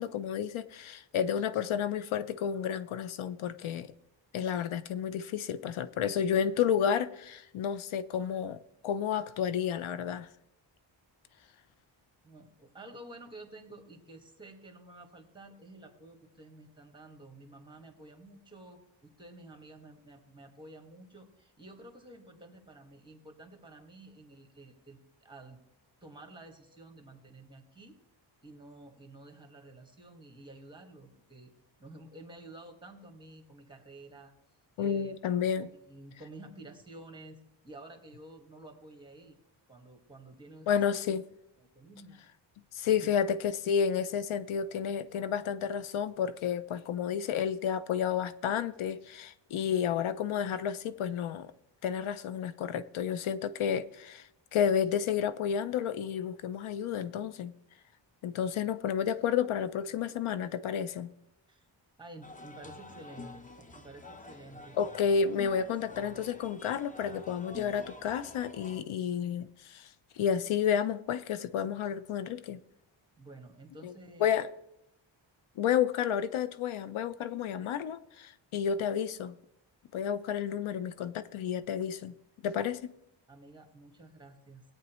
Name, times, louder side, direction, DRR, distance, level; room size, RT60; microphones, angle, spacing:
voice 1, 0.0-3.9 4.3-10.3 34.8-35.7 40.7-41.2 42.7-51.5 51.8-57.5 58.2-61.1 64.8-69.9 70.2-72.6 73.8-73.9 74.2-74.5 75.6-79.4 79.9-82.1 82.4-82.9, left 8 dB, 85° left, 0.6 m, -31 dB
voice 2, 12.2-25.6 26.0-28.0 28.4-31.5 31.8-34.3 34.8-35.2 35.6-39.4 39.7-40.7 41.6-42.2 42.9-43.0 61.5-61.7 62.0-64.8 73.2-74.3 83.3-84.6, right 2 dB, 10° right, 1.7 m, -51 dB
sound 1, 62.2-68.8, left 3 dB, 15° left, 0.7 m, -48 dB
18.0 x 9.0 x 3.1 m
wide cardioid pair, 110°, 47 cm